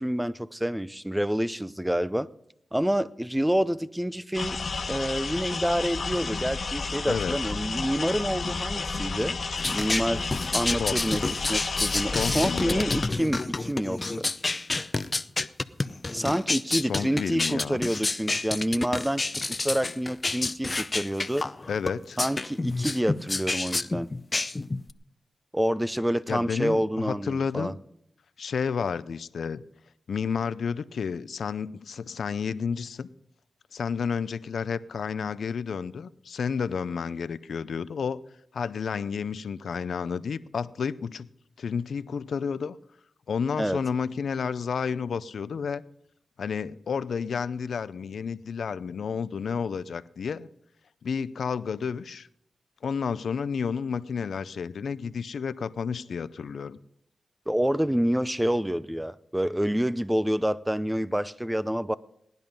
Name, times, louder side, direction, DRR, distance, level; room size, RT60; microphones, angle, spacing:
voice 1, 0.0-2.3 2.7-4.6 4.9-9.4 9.7-11.2 11.5-14.3 16.1-19.3 19.6-21.5 22.2-24.1 25.5-27.8 43.6-43.8 57.5-62.0, equal, 10° right, 0.6 m, -28 dB
sound 1, 4.3-13.1, left 4 dB, 65° left, 1.3 m, -32 dB
sound 2, 9.6-24.9, left 2 dB, 35° left, 0.6 m, -29 dB
voice 2, 12.0-12.8 16.8-17.8 21.7-22.2 26.3-27.8 28.4-29.6 30.1-33.1 33.7-38.2 38.5-41.3 41.6-42.8 43.3-45.8 46.4-50.5 51.0-52.3 52.8-56.8, left 6 dB, 80° left, 0.5 m, -31 dB
18.0 x 10.5 x 5.3 m
cardioid pair, 50°, 0 cm